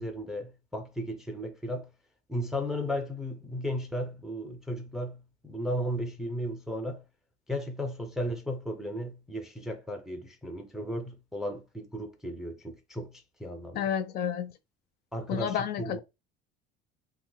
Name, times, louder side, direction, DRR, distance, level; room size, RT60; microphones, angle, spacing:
voice 1, 0.0-1.9 2.3-7.0 7.5-13.1 13.4-13.8 15.1-16.0, equal, ahead, 0.4 m, -35 dB
voice 2, 13.7-14.5 15.3-16.0, left 9 dB, 50° left, 0.5 m, -30 dB
2.7 x 2.2 x 3.7 m
cardioid pair, 150°, 21 cm